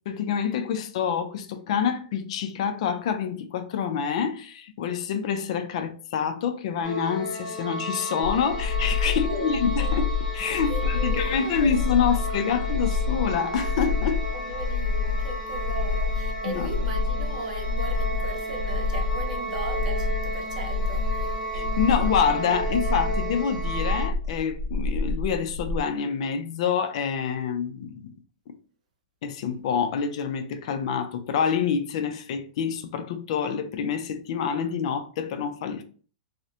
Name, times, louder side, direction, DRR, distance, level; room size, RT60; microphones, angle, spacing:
voice 1, 0.1-14.2 16.4-16.7 21.5-28.1 29.2-35.8, left 7 dB, 45° left, 0.3 m, -27 dB
sound 1, 6.8-24.1, right 1 dB, 5° left, 1.0 m, -34 dB
sound 2, 8.2-25.8, left 4 dB, 65° left, 0.8 m, -28 dB
voice 2, 9.0-10.1 10.7-11.8 12.1-12.2 14.3-21.4, right 3 dB, 65° right, 0.6 m, -37 dB
2.5 x 2.0 x 2.7 m
supercardioid pair, 165°, 4 cm